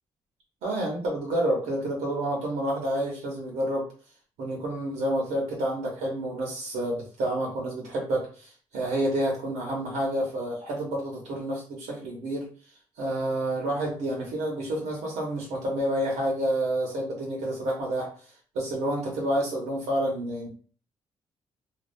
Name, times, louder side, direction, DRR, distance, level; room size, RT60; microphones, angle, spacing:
voice 1, 0.6-3.8 4.4-12.5 13.0-18.1 18.5-20.5, right 1 dB, 90° right, -1 dB, 0.7 m, -29 dB
2.2 x 2.2 x 2.6 m, 0.41 s
supercardioid pair, 65°, 11 cm